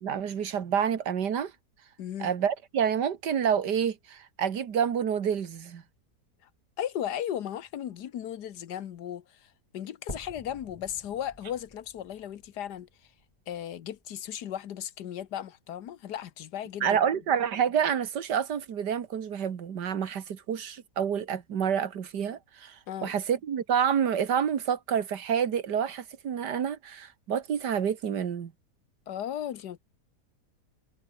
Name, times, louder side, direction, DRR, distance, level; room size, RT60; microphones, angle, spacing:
voice 1, 0.0-1.5 2.2-5.8 16.8-28.5, right 8 dB, 90° right, 2.1 m, -28 dB
voice 2, 2.0-2.3 6.8-12.9 13.5-17.0 22.9-23.1 29.1-29.8, left 10 dB, 80° left, 1.6 m, -36 dB
sound 1, 10.1-14.1 14.6-14.7 15.3-15.4 15.7-15.8 16.7-16.8, left 1 dB, 15° left, 3.6 m, -48 dB
omnidirectional pair, 1.7 m